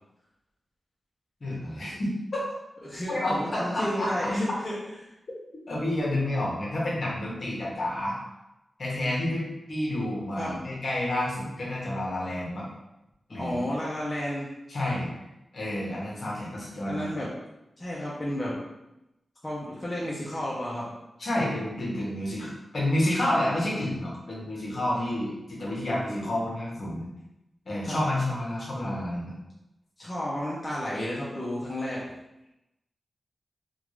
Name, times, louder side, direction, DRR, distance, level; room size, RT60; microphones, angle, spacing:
voice 1, 1.4-2.1 3.1-4.3 5.7-8.1 8.8-12.7 13.3-13.7 14.7-15.1 15.5-17.1 21.2-27.1 27.6-29.3, left 1 dB, 50° left, -5 dB, 1.2 m, -29 dB
voice 2, 2.8-4.8 10.4-10.6 13.3-14.5 16.8-17.3 17.8-18.6 19.4-20.9 27.9-28.0 30.0-32.0, left 1 dB, 20° left, -6 dB, 0.7 m, -32 dB
3.6 x 2.4 x 3.1 m, 0.92 s
wide cardioid pair, 110°, 0 cm